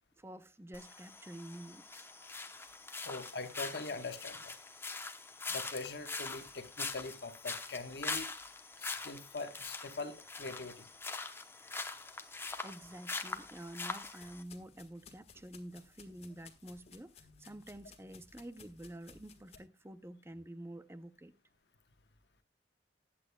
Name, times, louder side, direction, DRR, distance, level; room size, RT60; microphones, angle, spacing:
voice 1, 0.2-2.1 12.4-21.3, right 1 dB, 15° right, 0.6 m, -49 dB
sound 1, 0.7-14.4, left 3 dB, 15° left, 0.8 m, -43 dB
voice 2, 3.0-4.5 5.5-8.3 8.8-10.9, left 3 dB, 65° left, 1.2 m, -42 dB
sound 2, 13.2-19.6, left 5 dB, 35° left, 1.5 m, -59 dB
20.0 x 8.6 x 2.2 m
head